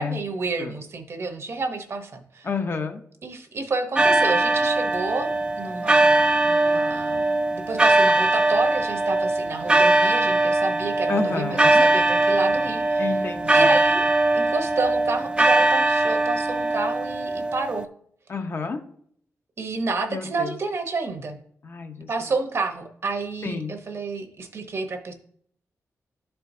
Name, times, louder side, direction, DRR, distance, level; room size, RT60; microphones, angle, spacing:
voice 1, 0.0-2.5 3.2-5.3 5.6-13.2 13.5-14.1 14.3-17.9 19.6-21.4 22.1-25.1, right 3 dB, 50° right, 5 dB, 0.9 m, -30 dB
voice 2, 2.4-3.0 11.1-11.8 13.0-13.6 18.3-18.8 20.1-20.5 21.6-22.1 23.4-23.7, left 4 dB, 45° left, 6 dB, 0.8 m, -29 dB
sound 1, 4.0-17.8, right 2 dB, 15° right, 0.3 m, -21 dB
11.5 x 4.5 x 2.7 m, 0.64 s
wide cardioid pair, 110°, 6 cm